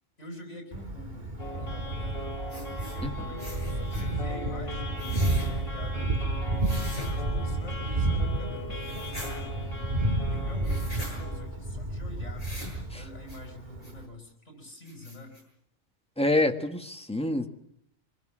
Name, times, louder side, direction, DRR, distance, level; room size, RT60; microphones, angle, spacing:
voice 1, 0.2-10.0 10.3-12.5 12.9-15.4, left 1 dB, 65° left, 3 dB, 5.9 m, -46 dB
Thunder, 0.7-14.0, right 1 dB, 35° right, 2.3 m, -31 dB
sound 1, 1.4-11.5, left 1 dB, 50° left, 4.7 m, -41 dB
sound 2, 2.5-3.0 3.4-4.1 5.0-5.5 6.6-7.1 8.8-9.3 10.6-11.1 12.4-12.8 13.3-13.4 13.8-13.9 14.4-14.5 14.8-15.4, left 1 dB, 30° left, 8.3 m, -43 dB
voice 2, 16.2-17.5, left 2 dB, 5° left, 5 dB, 1.4 m, -26 dB
24.5 x 21.0 x 7.4 m, 0.72 s
omnidirectional pair, 1.3 m